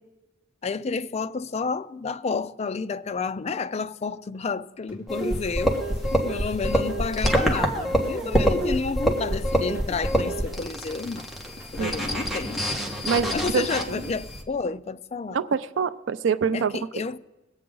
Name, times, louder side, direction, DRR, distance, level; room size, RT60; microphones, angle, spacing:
voice 1, 0.6-5.8 6.1-11.3 11.7-12.7 13.3-15.4 16.5-17.2, left 4 dB, 35° left, 0.4 m, -30 dB
sound 1, 4.9-14.4, equal, 15° right, 3.6 m, -46 dB
sound 2, 5.1-14.4, equal, ahead, 1.3 m, -26 dB
voice 2, 13.0-14.0 15.3-16.9, right 6 dB, 80° right, 0.4 m, -26 dB
21.5 x 8.6 x 3.8 m
head